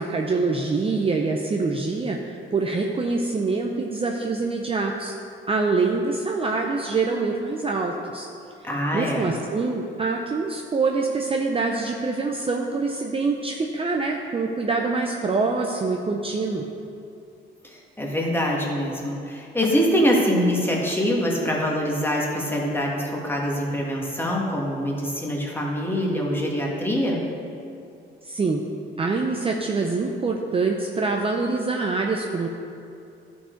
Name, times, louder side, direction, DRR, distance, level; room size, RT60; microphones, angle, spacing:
voice 1, 0.0-5.1 5.5-8.3 8.9-16.6 28.2-28.6 29.0-32.5, right 3 dB, 30° right, 1 dB, 0.6 m, -25 dB
voice 2, 8.6-9.3 17.7-27.2, equal, 10° left, -2 dB, 1.6 m, -24 dB
11.5 x 4.7 x 4.5 m, 2.6 s
cardioid pair, 90°, 20 cm